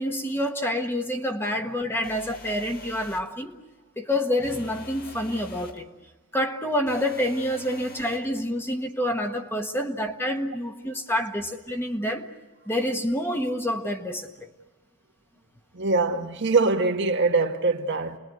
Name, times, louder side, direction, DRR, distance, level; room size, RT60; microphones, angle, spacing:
voice 1, 0.0-3.6 4.0-5.9 6.3-12.3 12.7-14.5, left 1 dB, 10° left, 1.3 m, -27 dB
sound 1, 2.0-3.3 4.4-5.8 6.9-8.3, left 2 dB, 40° left, 1.8 m, -45 dB
voice 2, 15.7-18.2, right 3 dB, 55° right, 1.4 m, -23 dB
29.5 x 21.0 x 9.3 m
head